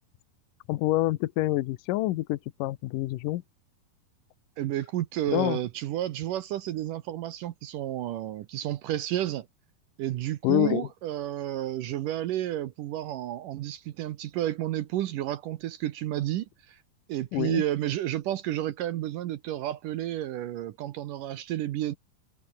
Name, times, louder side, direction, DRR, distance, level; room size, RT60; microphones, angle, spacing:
voice 1, 0.7-3.4 5.3-5.6 10.4-10.9 17.3-17.6, left 16 dB, 75° left, 2.2 m, -27 dB
voice 2, 4.6-9.5 10.0-16.8 17.1-22.0, right 13 dB, 70° right, 2.3 m, -31 dB
omnidirectional pair, 4.5 m